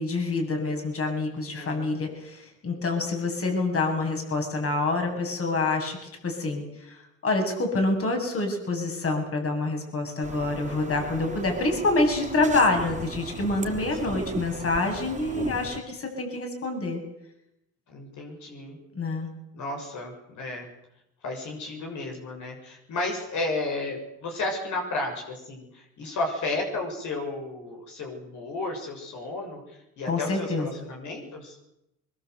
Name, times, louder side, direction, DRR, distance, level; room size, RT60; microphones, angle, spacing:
voice 1, 0.0-6.0 6.2-17.0 18.9-19.3 30.1-30.7, left 2 dB, 50° left, 3 dB, 8.0 m, -27 dB
voice 2, 1.3-2.0 11.2-11.8 14.0-14.4 17.9-18.8 19.5-20.7 21.2-29.6 30.0-31.6, left 2 dB, 75° left, 1 dB, 7.0 m, -33 dB
sound 1, 10.2-15.8, right 3 dB, 25° right, 3.2 m, -38 dB
23.5 x 23.0 x 8.2 m, 0.85 s
cardioid pair, 90°, 30 cm